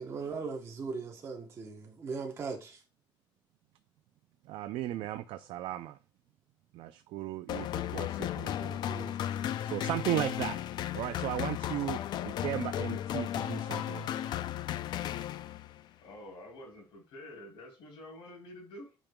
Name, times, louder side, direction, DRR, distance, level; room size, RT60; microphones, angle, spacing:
voice 1, 0.0-2.8 8.9-9.2, right 4 dB, 30° right, 0.9 m, -39 dB
voice 2, 4.4-6.0 6.7-9.2 9.6-10.6 10.9-12.0 12.2-14.4, right 13 dB, 75° right, 0.4 m, -36 dB
sound 1, 7.5-15.8, left 11 dB, 55° left, 0.4 m, -35 dB
voice 3, 16.0-18.9, left 1 dB, 90° left, 3.6 m, -48 dB
8.9 x 5.2 x 2.2 m
cardioid pair, 170°, 9 cm